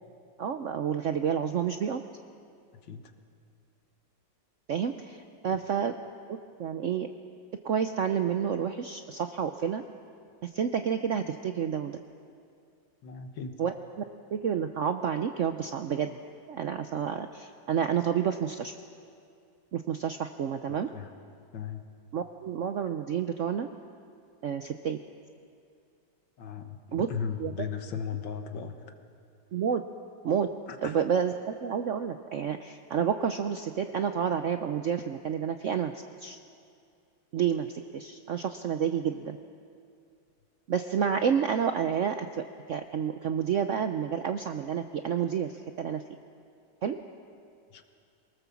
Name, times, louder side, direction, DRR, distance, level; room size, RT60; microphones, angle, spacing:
voice 1, 0.4-2.0 4.7-5.9 6.3-7.1 7.6-9.8 10.4-12.0 13.6-13.7 14.3-16.2 16.5-18.7 19.7-20.9 22.1-23.7 24.4-25.0 26.9-27.1 27.4-27.7 29.5-29.8 30.2-30.5 30.8-36.4 37.3-39.4 40.7-46.0 46.8-47.0, right 8 dB, 70° right, 7 dB, 0.7 m, -29 dB
voice 2, 13.0-13.6 20.9-21.1 21.5-21.9 26.4-28.8 30.8-31.0 47.7-47.8, left 6 dB, 80° left, 6 dB, 2.0 m, -36 dB
23.5 x 18.5 x 7.1 m, 2.4 s
omnidirectional pair, 2.0 m